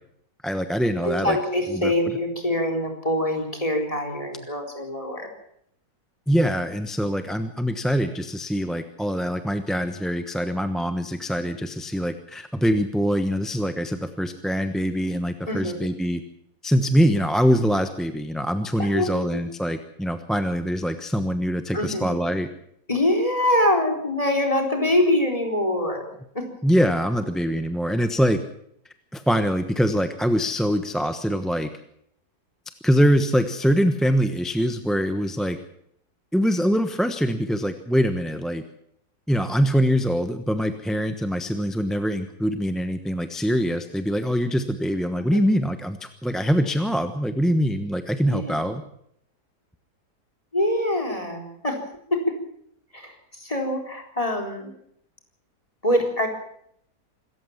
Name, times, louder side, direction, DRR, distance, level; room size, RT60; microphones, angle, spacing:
voice 1, 0.4-1.4 1.7-1.9 6.3-16.2 16.6-22.5 26.6-28.4 29.1-31.7 32.8-35.6 36.3-38.6 39.3-48.8, equal, ahead, 8 dB, 0.9 m, -23 dB
voice 2, 1.0-5.3 15.5-15.8 18.8-19.4 21.7-22.0 22.9-26.1 26.3-26.4 45.2-45.4 48.3-48.6 50.5-51.8 52.1-52.2 52.9-54.7 55.8-56.3, left 1 dB, 20° left, 3 dB, 4.3 m, -24 dB
26.0 x 14.5 x 7.3 m, 0.70 s
omnidirectional pair, 1.7 m